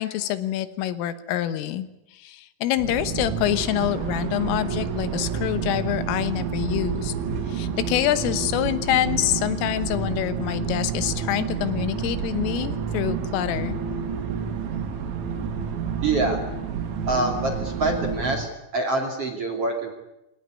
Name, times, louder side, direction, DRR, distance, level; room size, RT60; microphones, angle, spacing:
voice 1, 0.0-7.1 7.5-13.8, left 13 dB, 85° left, 11 dB, 3.8 m, -26 dB
sound 1, 2.8-18.4, right 6 dB, 70° right, 4.1 m, -29 dB
sound 2, 3.4-18.5, right 5 dB, 55° right, 3.3 m, -41 dB
voice 2, 16.0-16.4 17.1-19.9, right 2 dB, 40° right, 2 dB, 2.8 m, -25 dB
24.0 x 18.5 x 9.7 m, 0.90 s
omnidirectional pair, 5.8 m